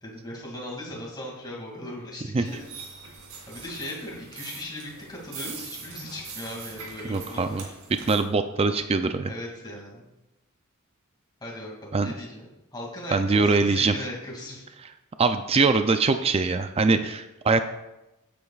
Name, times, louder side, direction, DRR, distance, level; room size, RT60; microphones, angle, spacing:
voice 1, 0.0-2.7 3.5-7.6 9.3-10.1 11.4-12.4 12.7-14.6, left 1 dB, 20° left, -3 dB, 2.4 m, -38 dB
sound 1, 2.5-8.2, right 5 dB, 70° right, 2.3 m, -42 dB
voice 2, 7.1-7.6 8.1-9.3 11.9-12.1 13.1-13.9 15.2-17.6, right 4 dB, 25° right, 8 dB, 0.4 m, -22 dB
15.5 x 8.5 x 2.4 m, 0.96 s
head